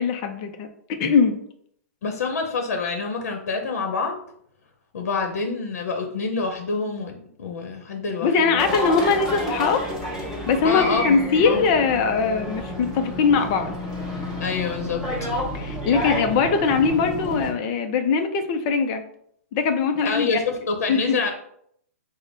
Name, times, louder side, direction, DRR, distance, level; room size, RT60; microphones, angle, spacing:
voice 1, 0.0-1.4 8.2-9.8 10.5-13.8 15.5-19.0 19.5-20.3 20.9-21.2, left 5 dB, 25° left, 7 dB, 0.5 m, -21 dB
voice 2, 2.0-4.2 4.9-8.8 10.6-11.6 14.4-15.0 20.0-21.3, left 4 dB, 75° left, 4 dB, 0.8 m, -27 dB
sound 1, 8.6-17.5, equal, 5° right, 1.1 m, -30 dB
5.1 x 2.1 x 3.9 m, 0.68 s
hypercardioid pair, 165°, 8 cm